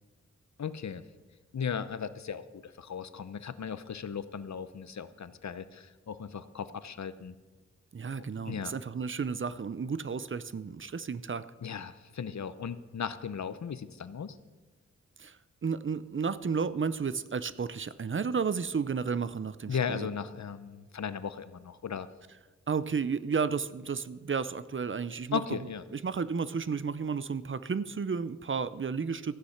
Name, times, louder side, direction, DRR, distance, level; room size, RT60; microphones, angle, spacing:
voice 1, 0.6-1.0 1.5-7.4 8.5-8.7 11.6-14.4 19.7-22.1 25.3-25.8, left 7 dB, 70° left, 13 dB, 0.7 m, -36 dB
voice 2, 7.9-11.5 15.2-15.4 15.6-20.1 22.7-25.4 25.9-29.3, right 5 dB, 45° right, 15 dB, 0.6 m, -32 dB
14.5 x 9.7 x 5.7 m, 1.3 s
wide cardioid pair, 75°, 29 cm